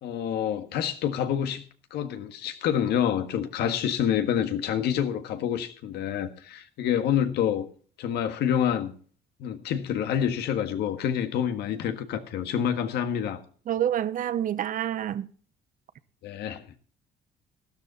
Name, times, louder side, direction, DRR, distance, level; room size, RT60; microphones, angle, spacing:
voice 1, 0.0-1.6 1.9-7.7 8.0-8.9 9.4-13.4 16.2-16.6, left 9 dB, 75° left, 1.6 m, -27 dB
voice 2, 13.7-15.3, right 10 dB, 55° right, 0.8 m, -27 dB
12.5 x 12.5 x 4.1 m
cardioid pair, 110°, 17 cm